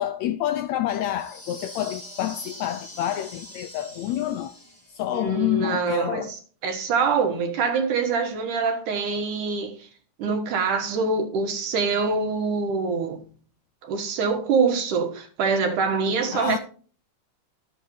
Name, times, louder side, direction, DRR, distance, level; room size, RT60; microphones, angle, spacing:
voice 1, 0.0-4.5 4.9-6.3 16.3-16.6, left 12 dB, 80° left, 1.6 m, -28 dB
sound 1, 1.0-5.1, left 1 dB, 15° left, 1.2 m, -43 dB
voice 2, 5.1-6.2 6.6-9.9 10.2-13.2 13.8-16.6, right 5 dB, 75° right, 2.9 m, -24 dB
13.5 x 8.2 x 2.7 m
omnidirectional pair, 3.6 m